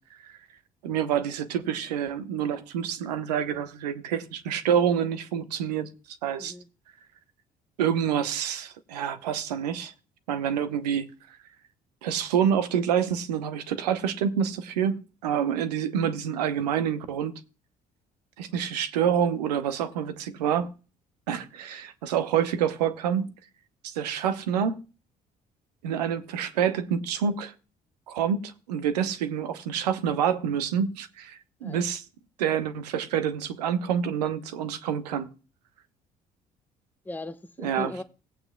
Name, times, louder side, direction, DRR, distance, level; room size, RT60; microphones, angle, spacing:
voice 1, 0.8-6.5 7.8-9.9 10.3-11.1 12.0-17.4 18.4-20.7 21.3-23.3 23.8-24.8 25.8-27.5 28.1-32.0 32.4-35.3 37.6-37.9, right 8 dB, 75° right, 0.8 m, -27 dB
voice 2, 37.0-38.0, left 2 dB, 10° left, 0.8 m, -37 dB
17.5 x 8.8 x 2.3 m
figure-of-eight pair, 50°, 21 cm